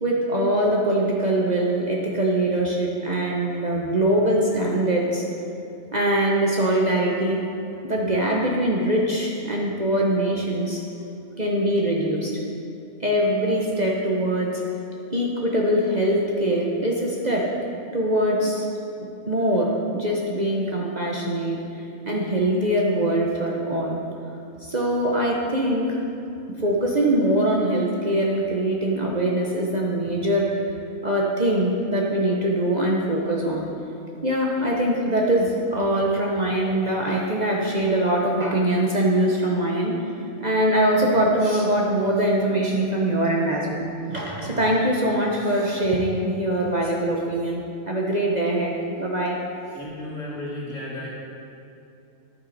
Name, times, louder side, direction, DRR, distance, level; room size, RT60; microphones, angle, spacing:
voice 1, 0.0-5.2 5.9-7.4 7.8-10.8 11.4-12.3 13.0-14.6 15.1-17.5 17.9-18.7 19.3-21.6 22.1-24.0 24.6-26.0 26.5-30.6 31.0-33.7 34.2-39.9 40.4-48.7 49.0-49.4, right 1 dB, 35° right, -2 dB, 1.0 m, -23 dB
voice 2, 49.7-51.1, left 1 dB, 55° left, -5 dB, 2.4 m, -33 dB
11.0 x 8.8 x 4.1 m, 2.8 s
omnidirectional pair, 1.4 m